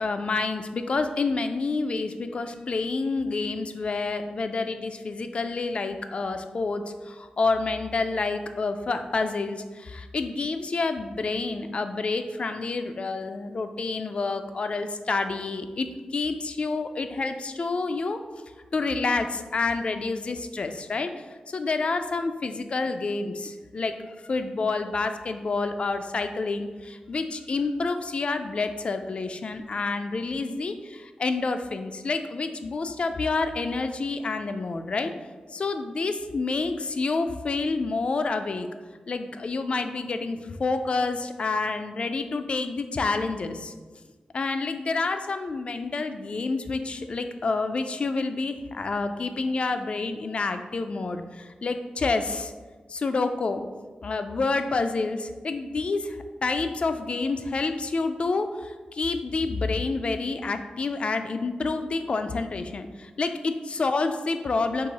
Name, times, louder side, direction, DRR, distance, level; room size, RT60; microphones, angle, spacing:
voice 1, 0.0-18.2 18.7-21.1 21.5-24.0 24.3-35.1 35.5-38.7 39.1-43.7 44.3-52.5 52.9-53.6 54.0-64.9, left 3 dB, 45° left, 8 dB, 0.3 m, -28 dB
4.6 x 2.9 x 4.0 m, 1.3 s
wide cardioid pair, 120°, 3 cm